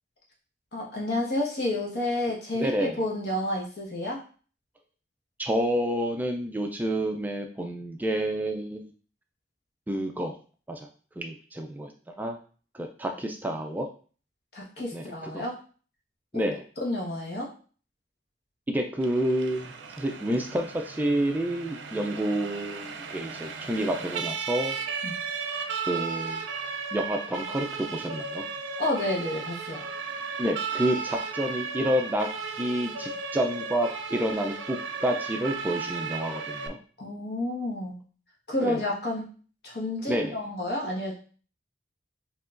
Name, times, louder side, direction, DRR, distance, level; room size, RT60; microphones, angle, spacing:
voice 1, 0.7-4.2 14.5-15.5 16.3-16.4 16.8-17.5 25.0-25.2 28.8-29.9 37.0-38.0 38.5-39.3 39.6-41.2, left 1 dB, 65° left, -2 dB, 1.2 m, -30 dB
voice 2, 2.5-3.0 5.4-8.9 9.9-10.3 10.7-10.9 11.2-11.9 12.2-12.4 12.7-13.9 14.9-15.4 16.3-16.6 18.7-24.8 25.9-26.5 26.9-28.4 30.4-32.3 32.5-36.8 38.6-38.8 40.1-40.4, right 1 dB, 10° right, 3 dB, 0.3 m, -29 dB
Siren, 19.0-36.7, right 5 dB, 85° right, 0.4 m, -35 dB
4.7 x 2.9 x 2.4 m, 0.41 s
head